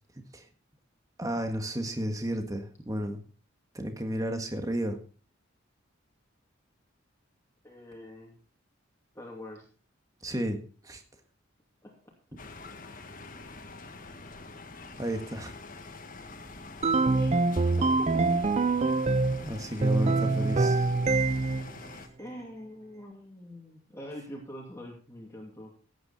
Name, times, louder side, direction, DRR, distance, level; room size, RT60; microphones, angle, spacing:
voice 1, 1.2-3.2 3.7-5.0 10.2-10.6 10.8-11.0 15.0-15.5 19.4-20.9, equal, 15° right, 6 dB, 1.7 m, -32 dB
voice 2, 7.6-8.4 9.1-9.7 11.8-11.9 17.1-18.4 22.2-25.7, equal, 15° left, -1 dB, 2.5 m, -44 dB
sound 1, 12.4-22.1, left 3 dB, 45° left, 1.6 m, -45 dB
sound 2, 16.8-19.4 19.8-21.7, right 3 dB, 35° right, 0.5 m, -25 dB
16.0 x 9.0 x 4.1 m, 0.39 s
head